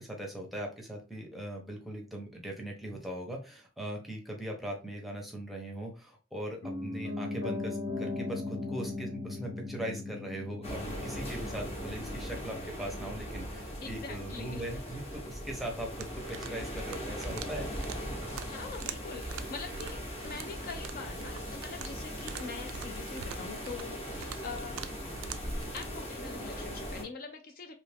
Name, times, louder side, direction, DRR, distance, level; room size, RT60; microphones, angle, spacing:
voice 1, 0.0-17.7, right 1 dB, ahead, 0 dB, 0.7 m, -40 dB
Piano, 6.6-16.6 16.9-17.0, left 3 dB, 80° left, 1.4 m, -40 dB
sound 1, 10.6-27.0, equal, 30° left, 0.9 m, -39 dB
voice 2, 13.8-14.6 18.4-24.8 25.7-27.7, left 4 dB, 45° left, 5 dB, 0.4 m, -43 dB
sound 2, 16.0-25.9, right 7 dB, 75° right, 0.3 m, -45 dB
2.8 x 2.5 x 3.3 m, 0.32 s
head